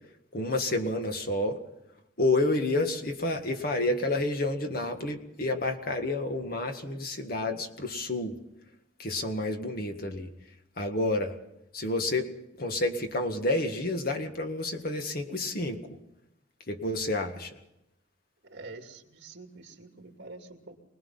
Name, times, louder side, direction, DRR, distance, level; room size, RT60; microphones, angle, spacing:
voice 1, 0.3-1.6 2.2-8.4 9.0-10.3 10.8-11.4 11.7-12.3 12.6-15.8 16.7-17.5, left 2 dB, 50° left, 5 dB, 1.8 m, -29 dB
voice 2, 18.4-20.8, right 3 dB, 60° right, 4 dB, 2.5 m, -46 dB
24.5 x 19.5 x 5.6 m, 0.87 s
head